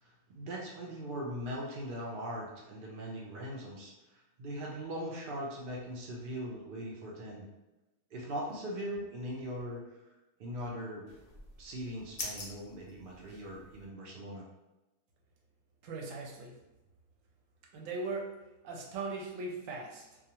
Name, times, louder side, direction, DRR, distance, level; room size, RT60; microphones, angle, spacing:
voice 1, 0.0-7.5 8.1-10.0 10.4-11.1 11.6-14.5, equal, 85° right, -3 dB, 0.4 m, -40 dB
sound 1, 11.1-13.9, left 2 dB, 55° left, 0.6 m, -45 dB
voice 2, 15.8-16.5 17.7-18.4 18.6-20.0, right 3 dB, 70° right, 0 dB, 0.9 m, -39 dB
2.4 x 2.3 x 2.8 m, 1.0 s
omnidirectional pair, 1.6 m